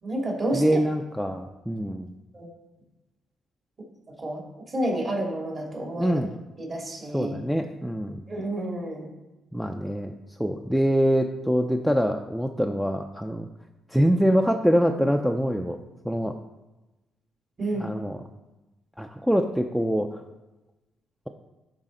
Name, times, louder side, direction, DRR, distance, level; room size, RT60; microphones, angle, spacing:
voice 1, 0.0-0.6 2.3-2.5 4.1-6.2 6.6-7.4 8.3-9.1 17.6-17.9, right 1 dB, 40° right, -1 dB, 2.2 m, -30 dB
voice 2, 0.5-2.1 6.0-6.3 7.1-8.3 9.5-10.1 10.4-13.5 13.9-16.3 17.8-18.2 19.0-20.2, equal, ahead, 3 dB, 0.5 m, -24 dB
11.5 x 4.0 x 3.8 m, 1.0 s
cardioid pair, 90°, 0 cm